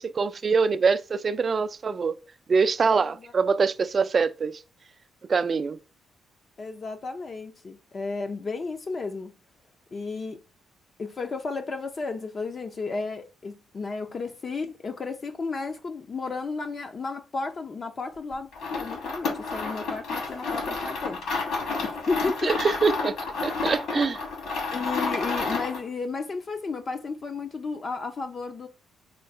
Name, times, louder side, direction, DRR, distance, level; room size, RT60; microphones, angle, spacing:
voice 1, 0.0-2.2 2.5-4.6 5.3-5.8 22.4-24.2, right 5 dB, 40° right, 0.3 m, -24 dB
voice 2, 2.8-3.3 6.6-9.3 9.9-10.4 11.0-21.4 21.8-22.6 24.7-28.7, left 4 dB, 40° left, 0.5 m, -33 dB
sound 1, 18.5-25.9, left 4 dB, 70° left, 2.2 m, -30 dB
3.7 x 2.3 x 4.5 m
cardioid pair, 90°, 0 cm